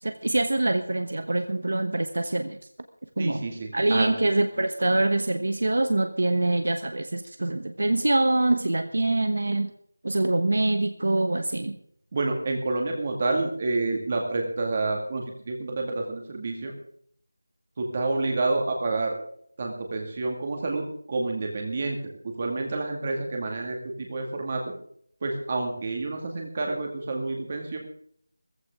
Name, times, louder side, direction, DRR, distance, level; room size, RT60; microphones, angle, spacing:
voice 1, 0.0-2.6 3.2-3.4 3.7-9.7 10.0-11.8, right 2 dB, 50° right, 8 dB, 1.2 m, -24 dB
voice 2, 3.2-4.1 12.1-16.7 17.8-19.2 19.6-24.6 25.2-27.8, right 2 dB, 20° right, 2 dB, 2.1 m, -29 dB
16.0 x 15.0 x 3.7 m, 0.64 s
figure-of-eight pair, 180°, 0 cm